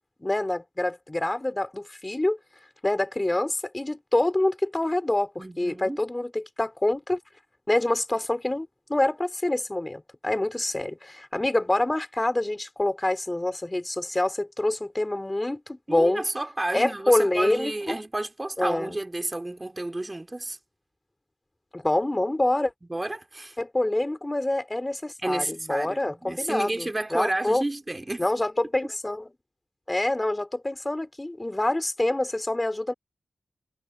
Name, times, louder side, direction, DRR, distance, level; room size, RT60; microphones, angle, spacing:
voice 1, 0.2-2.4 2.8-7.2 7.7-16.3 16.7-18.0 18.6-18.9 21.7-22.7 23.6-27.6 28.2-29.3 29.9-32.9, left 1 dB, 20° left, 4.8 m, -26 dB
voice 2, 5.4-6.0 15.9-20.6 22.9-23.6 25.2-28.2, right 2 dB, 25° right, 3.5 m, -31 dB
cardioid pair, 50°, 0 cm